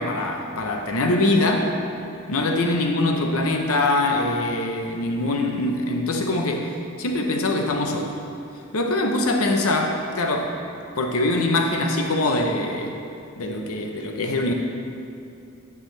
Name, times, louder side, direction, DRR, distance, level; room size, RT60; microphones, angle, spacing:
voice 1, 0.0-1.7 2.3-6.7 7.0-8.1 8.7-10.5 11.0-12.9 13.4-14.5, left 2 dB, 70° left, 2 dB, 0.8 m, -23 dB
9.3 x 9.2 x 3.2 m, 2.6 s
head